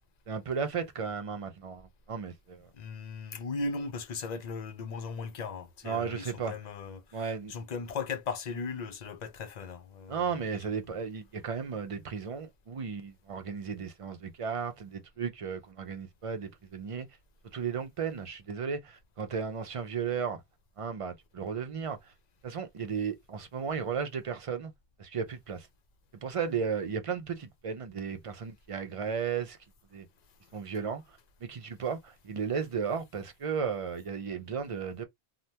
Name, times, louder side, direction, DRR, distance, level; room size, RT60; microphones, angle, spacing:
voice 1, 0.3-2.7 5.8-6.5 7.1-7.5 10.1-17.1 17.5-20.4 20.8-22.1 22.4-24.7 25.0-25.7 26.1-29.6 29.9-30.1 30.5-31.0 31.4-35.0, right 6 dB, 45° right, 0.4 m, -34 dB
voice 2, 2.7-10.7, left 4 dB, 50° left, 0.6 m, -38 dB
3.3 x 2.1 x 2.7 m
omnidirectional pair, 1.1 m